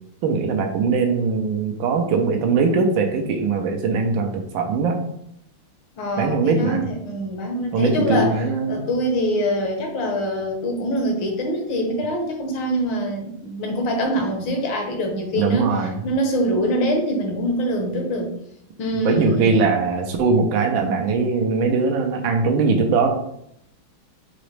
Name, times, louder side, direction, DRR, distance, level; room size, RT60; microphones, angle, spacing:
voice 1, 0.2-5.0 6.2-6.9 7.7-8.9 15.4-16.0 19.0-23.1, right 4 dB, 75° right, 3 dB, 1.4 m, -21 dB
voice 2, 6.0-8.3 8.7-18.3 18.8-19.6, equal, 70° left, 2 dB, 1.5 m, -24 dB
5.0 x 2.9 x 3.2 m, 0.73 s
omnidirectional pair, 2.2 m